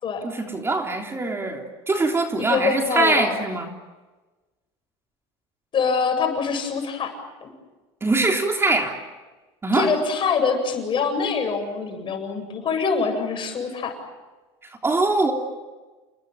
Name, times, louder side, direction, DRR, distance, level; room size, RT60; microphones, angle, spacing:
voice 1, 0.2-3.7 8.0-8.9 9.6-9.9 14.8-15.3, right 3 dB, 20° right, 3 dB, 3.4 m, -22 dB
voice 2, 2.5-3.3 5.7-7.5 9.7-14.0, left 5 dB, 40° left, 6 dB, 7.8 m, -24 dB
30.0 x 20.5 x 9.0 m, 1.2 s
supercardioid pair, 100°, 13 cm